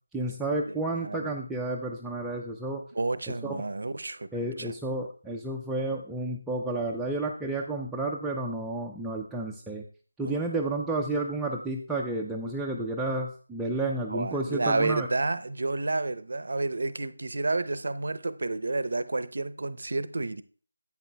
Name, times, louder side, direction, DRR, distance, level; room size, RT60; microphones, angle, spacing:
voice 1, 0.1-2.8 3.4-3.6 4.3-9.8 10.2-15.1, right 2 dB, 5° right, 0.4 m, -31 dB
voice 2, 0.7-1.3 2.9-4.7 10.2-10.4 14.1-20.4, right 2 dB, 65° right, 0.6 m, -30 dB
10.5 x 8.7 x 2.2 m
figure-of-eight pair, 165°, 0 cm